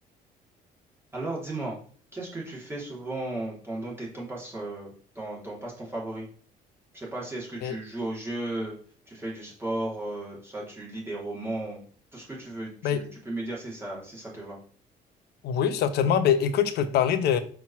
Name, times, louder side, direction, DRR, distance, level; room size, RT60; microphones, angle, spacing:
voice 1, 1.1-1.8 2.1-6.3 6.9-8.8 9.1-11.8 12.1-14.6, right 2 dB, 15° right, -4 dB, 3.0 m, -35 dB
voice 2, 15.4-17.4, left 8 dB, 75° left, 10 dB, 1.0 m, -23 dB
5.9 x 3.8 x 6.1 m, 0.43 s
cardioid pair, 110°, 17 cm